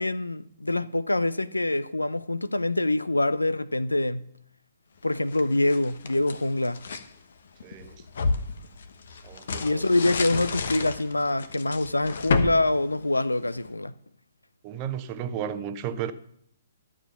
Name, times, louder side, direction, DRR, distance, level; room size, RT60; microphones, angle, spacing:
voice 1, 0.0-4.3 5.0-6.8 9.6-13.9, left 2 dB, 80° left, 0.6 m, -25 dB
sound 1, 5.1-7.1 7.6-13.7, left 4 dB, 55° left, 1.1 m, -31 dB
voice 2, 7.6-7.9 9.2-9.8 14.6-16.1, right 9 dB, 30° right, 0.9 m, -33 dB
13.0 x 7.3 x 5.8 m
figure-of-eight pair, 125°, 0 cm